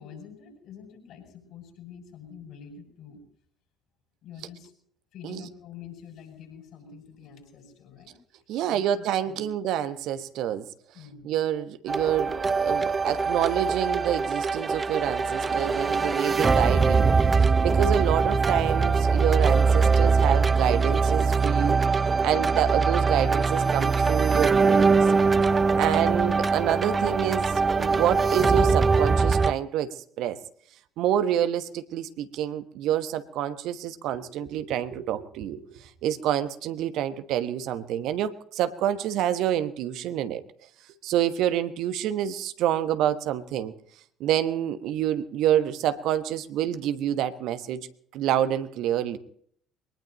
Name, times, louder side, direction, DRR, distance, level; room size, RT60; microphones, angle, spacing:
voice 1, 0.0-3.2 4.2-4.7 5.1-8.1 8.7-9.5 10.9-11.4, left 7 dB, 55° left, 3 dB, 7.8 m, -46 dB
voice 2, 8.5-10.6 11.2-21.8 22.2-25.0 25.8-30.4 31.0-40.4 41.0-43.7 44.2-47.9 48.1-49.2, right 10 dB, 60° right, 11 dB, 1.2 m, -27 dB
sound 1, 11.9-29.5, right 4 dB, 30° right, 0.7 m, -22 dB
23.0 x 19.5 x 3.1 m, 0.62 s
figure-of-eight pair, 50°, 0 cm